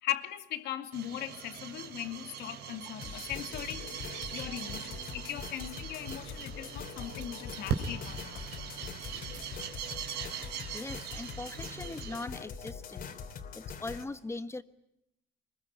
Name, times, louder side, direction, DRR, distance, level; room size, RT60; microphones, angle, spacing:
voice 1, 0.0-8.4, left 12 dB, 80° left, 2.3 m, -39 dB
sound 1, 0.9-12.2, right 7 dB, 80° right, 3.6 m, -41 dB
sound 2, 3.0-14.0, left 6 dB, 60° left, 3.2 m, -43 dB
sound 3, 3.5-3.9 4.3-4.4 5.0-6.7 7.2-7.4 7.9-8.0 9.0-9.7 11.1-11.4, right 6 dB, 45° right, 2.7 m, -54 dB
voice 2, 10.7-13.1 13.5-14.6, left 2 dB, 15° left, 1.3 m, -40 dB
24.5 x 21.5 x 10.0 m
cardioid pair, 110°, 17 cm